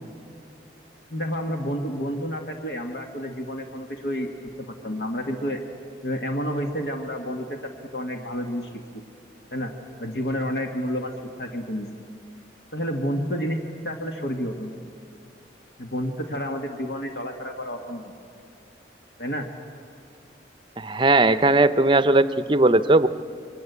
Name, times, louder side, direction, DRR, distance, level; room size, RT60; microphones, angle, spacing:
voice 1, 1.1-4.3 4.6-5.6 6.0-7.6 7.9-9.0 9.5-9.7 10.0-11.1 11.4-11.9 12.7-13.6 13.8-14.7 15.8-18.1 19.2-19.5, equal, 65° left, 3 dB, 1.9 m, -30 dB
voice 2, 20.8-23.1, right 2 dB, 25° right, 13 dB, 0.7 m, -18 dB
28.5 x 23.0 x 8.3 m, 2.4 s
head